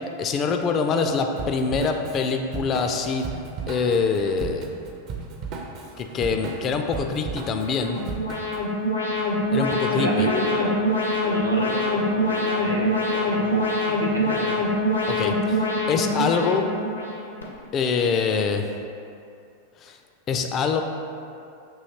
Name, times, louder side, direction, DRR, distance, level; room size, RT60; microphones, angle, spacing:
voice 1, 0.2-3.3 3.7-4.7 6.0-8.0 9.5-10.3 15.1-16.7 17.7-18.7 19.8-20.0 20.3-20.8, left 5 dB, 30° left, 5 dB, 0.3 m, -24 dB
Drum kit / Drum, 1.4-8.7, right 4 dB, 40° right, 0.4 m, -35 dB
Alarm, 7.6-17.4, left 1 dB, 80° left, 0.6 m, -24 dB
voice 2, 9.9-10.7 11.2-14.5, equal, 85° right, -4 dB, 0.6 m, -30 dB
5.5 x 2.8 x 2.8 m, 2.6 s
figure-of-eight pair, 90°, 0 cm